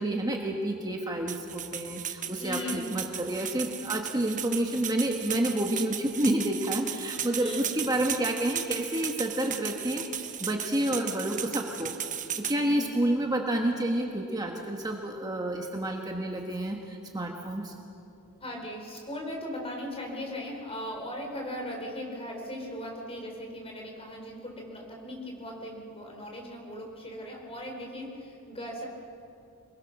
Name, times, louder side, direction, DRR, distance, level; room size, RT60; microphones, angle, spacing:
voice 1, 0.0-11.9 12.4-17.7, right 1 dB, 20° right, 1 dB, 1.5 m, -29 dB
sound 1, 1.3-12.6, right 9 dB, 35° right, 1.2 m, -36 dB
voice 2, 2.4-2.9 7.3-7.7 10.8-11.0 12.6-12.9 18.4-28.8, left 1 dB, 25° left, 0 dB, 4.6 m, -38 dB
27.0 x 21.5 x 6.2 m, 2.7 s
head